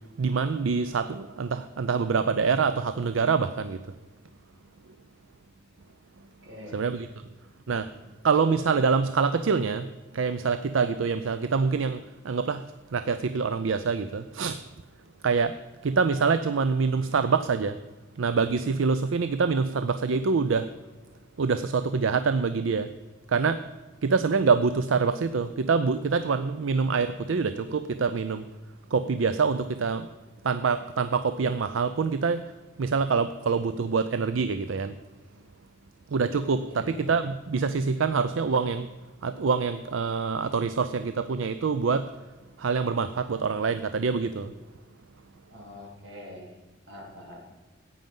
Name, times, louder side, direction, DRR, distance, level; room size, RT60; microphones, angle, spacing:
voice 1, 0.2-3.9 6.7-7.1 7.7-7.9 8.2-14.7 15.2-17.8 18.2-20.7 21.4-22.9 23.3-23.7 24.0-28.5 28.9-30.1 30.4-32.5 32.8-35.0 36.1-38.9 39.2-42.2 42.6-44.5, right 5 dB, 85° right, 12 dB, 0.5 m, -25 dB
voice 2, 6.4-6.9 36.6-36.9 45.5-46.5 46.9-47.5, left 1 dB, 70° right, -1 dB, 3.3 m, -44 dB
14.5 x 9.1 x 5.4 m, 1.2 s
head